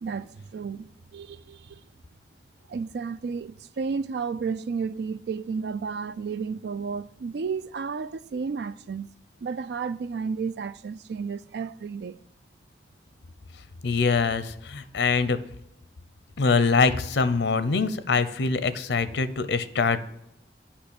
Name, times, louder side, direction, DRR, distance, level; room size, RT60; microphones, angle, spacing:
voice 1, 0.0-1.8 2.7-9.1 9.4-12.2, right 5 dB, 75° right, 0.4 m, -32 dB
voice 2, 13.8-15.4 16.4-20.0, left 4 dB, 85° left, 0.6 m, -24 dB
8.8 x 5.0 x 6.8 m
head